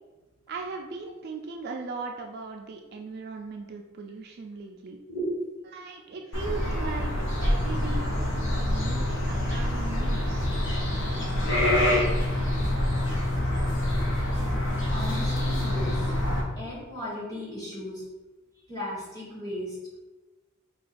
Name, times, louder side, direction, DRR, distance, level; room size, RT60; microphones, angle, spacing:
voice 1, 0.5-5.0 5.7-7.1 7.4-10.5, right 4 dB, 45° right, 2 dB, 0.3 m, -38 dB
sound 1, 6.3-16.4, left 1 dB, 60° left, 0.8 m, -26 dB
voice 2, 14.9-16.1 16.6-18.0 18.7-19.8, equal, 15° left, -7 dB, 1.3 m, -35 dB
3.7 x 2.3 x 4.1 m, 1.2 s
head